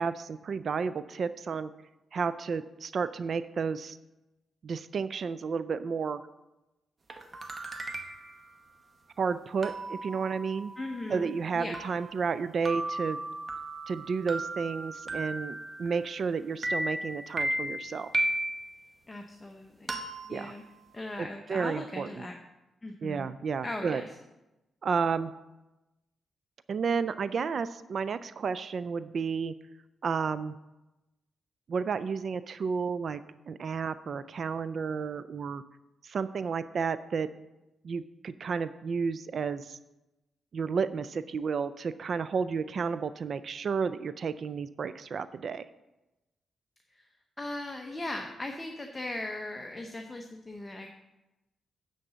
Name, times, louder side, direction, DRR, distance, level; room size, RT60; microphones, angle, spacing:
voice 1, 0.0-1.7 2.1-4.0 4.6-6.2 9.2-10.7 11.1-13.2 13.9-18.1 20.3-20.5 21.2-22.3 23.0-24.0 24.8-25.3 26.7-29.5 30.0-30.5 31.7-33.2 33.5-35.6 36.0-37.3 37.8-39.8 40.5-45.7, right 5 dB, 55° right, 14 dB, 0.3 m, -32 dB
sound 1, 7.1-8.4 9.6-16.3 16.6-18.8 19.9-21.2, right 1 dB, 35° right, 1.0 m, -36 dB
voice 2, 10.8-11.8 19.1-20.0 20.2-20.6 20.9-22.4 22.8-23.3 23.6-24.1 46.9-47.1 47.4-50.9, left 2 dB, 20° left, 3 dB, 0.8 m, -38 dB
9.7 x 4.0 x 6.7 m, 0.99 s
cardioid pair, 95°, 0 cm